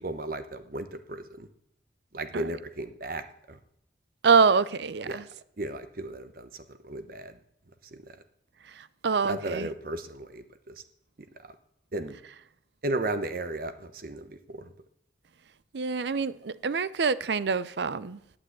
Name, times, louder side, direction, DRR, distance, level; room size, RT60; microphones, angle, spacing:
voice 1, 0.0-1.5 2.1-3.6 5.1-5.2 5.6-7.3 7.9-8.0 9.2-10.7 11.9-12.2 12.8-14.7, right 2 dB, 50° right, 0.9 m, -35 dB
voice 2, 4.2-5.3 8.6-9.7 15.7-18.2, right 5 dB, 65° right, 0.5 m, -25 dB
10.0 x 8.9 x 8.4 m
head